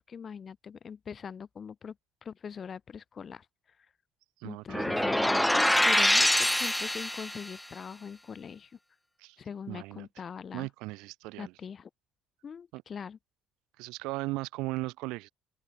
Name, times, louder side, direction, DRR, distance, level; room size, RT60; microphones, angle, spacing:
voice 1, 0.0-2.0 2.2-3.5 4.4-8.8 9.4-10.7 11.4-11.9 12.4-13.2, left 7 dB, 40° left, 2.0 m, -42 dB
voice 2, 4.4-5.3 9.2-9.4 9.7-10.1 10.5-11.5 12.7-12.8 13.8-15.3, right 22 dB, 85° right, 4.6 m, -37 dB
sound 1, 4.7-7.5, left 1 dB, 5° left, 0.8 m, -25 dB
cardioid pair, 100°, 0 cm